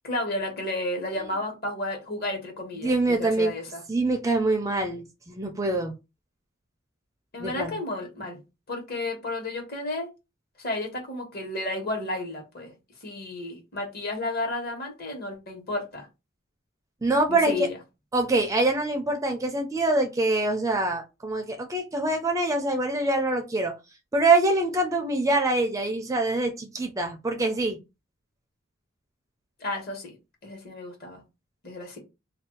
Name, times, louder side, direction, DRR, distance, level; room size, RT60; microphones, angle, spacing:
voice 1, 0.0-3.8 7.3-8.4 8.7-10.1 10.6-12.7 13.0-16.1 17.3-17.8 29.6-30.1 30.4-31.2 31.6-32.0, left 2 dB, 50° left, 1.2 m, -32 dB
voice 2, 2.8-3.5 3.9-5.9 7.4-7.7 17.0-17.7 18.1-23.7 24.1-27.8, right 2 dB, 15° right, 0.4 m, -24 dB
2.5 x 2.3 x 3.7 m
head